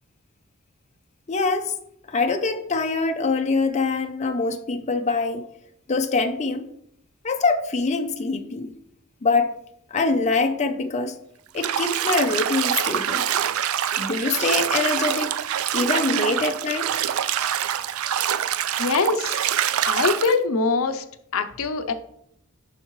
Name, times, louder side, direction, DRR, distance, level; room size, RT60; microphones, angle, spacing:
voice 1, 1.3-1.7 2.1-5.4 5.9-6.7 7.2-8.7 9.2-9.6 9.9-11.2 11.5-13.3 14.0-15.3 15.7-16.9, left 3 dB, 35° left, 6 dB, 0.6 m, -24 dB
Bathtub (filling or washing), 11.6-20.3, right 10 dB, 75° right, 0.4 m, -25 dB
voice 2, 18.8-19.4 19.8-21.0 21.3-21.9, left 4 dB, 70° left, 9 dB, 0.6 m, -23 dB
9.6 x 5.4 x 3.1 m, 0.74 s
head